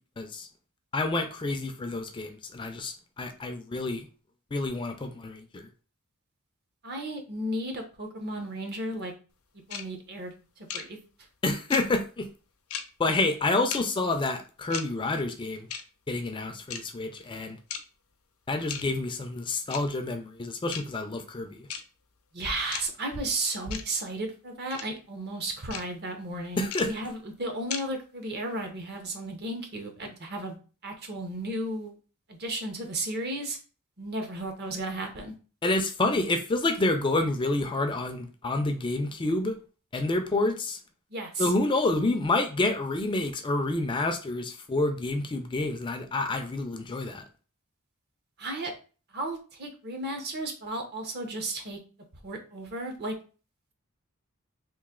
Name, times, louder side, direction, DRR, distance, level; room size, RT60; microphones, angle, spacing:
voice 1, 0.2-0.5 0.9-4.1 4.5-5.7 11.4-12.3 13.0-15.7 16.1-17.6 18.5-21.7 26.6-26.9 35.6-39.6 39.9-40.8 41.4-47.2, left 2 dB, 20° left, 0.4 m, -28 dB
voice 2, 6.8-9.1 9.7-11.0 22.3-30.6 30.8-31.9 32.3-33.6 34.0-35.3 41.1-41.5 48.4-48.7 49.1-51.8 52.2-53.2, right 1 dB, 50° right, 0.8 m, -34 dB
sound 1, 9.7-9.8 10.7-10.8 11.7-11.8 12.7-12.8 13.7-13.8 14.7-14.8 15.7-15.8 16.7-16.8 17.7-17.8 18.7-18.8 19.7-19.8 20.7-20.8 21.7-21.8 22.7-22.8 23.7-23.8 24.7-24.8 25.7-25.8 26.7-26.8 27.7-27.8, left 8 dB, 80° left, 0.5 m, -34 dB
3.1 x 2.6 x 3.6 m
head